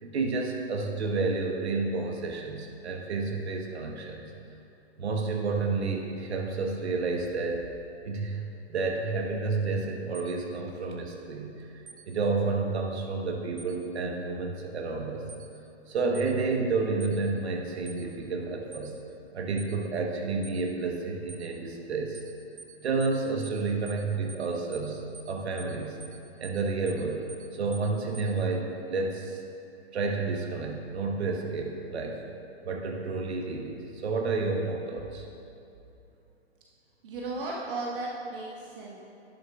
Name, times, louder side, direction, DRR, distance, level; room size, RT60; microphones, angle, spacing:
voice 1, 0.0-4.3 5.0-7.6 8.0-8.4 8.7-11.5 12.1-15.2 15.9-19.0 19.3-22.2 22.8-26.0 26.4-27.2 27.5-29.4 29.9-32.2 32.6-35.3, right 3 dB, 70° right, 2 dB, 1.2 m, -30 dB
sound 1, 10.1-10.3 11.9-12.0 13.6-13.7 15.3-15.5 16.1-16.3 17.0-17.2 17.9-18.0 18.7-18.9 19.6-19.7 20.4-20.6 21.3-21.5 22.1-22.3 22.6-22.7 23.0-23.2 23.4-23.6 23.9-24.0 24.3-24.5 24.7-24.9 25.1-25.3 25.6-25.7 26.0-26.2 26.4-26.6 26.9-27.0 27.3-27.5 27.7-27.9 28.1-28.3, right 5 dB, 90° right, 1.1 m, -46 dB
voice 2, 37.0-39.0, right 2 dB, 55° right, -3 dB, 1.4 m, -35 dB
11.5 x 10.5 x 2.4 m, 2.7 s
hypercardioid pair, 125°, 33 cm